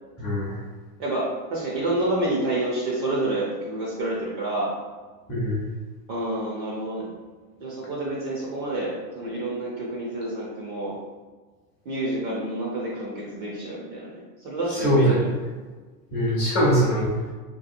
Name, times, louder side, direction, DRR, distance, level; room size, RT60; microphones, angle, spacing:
voice 1, 0.2-0.5 5.3-5.7 14.8-15.2 16.1-17.1, equal, 20° left, -6 dB, 0.5 m, -22 dB
voice 2, 1.0-4.7 6.1-7.1 7.6-10.9 11.9-15.3 16.7-16.8, right 1 dB, 35° right, -4 dB, 0.4 m, -28 dB
2.7 x 2.3 x 2.5 m, 1.4 s
supercardioid pair, 135°, 49 cm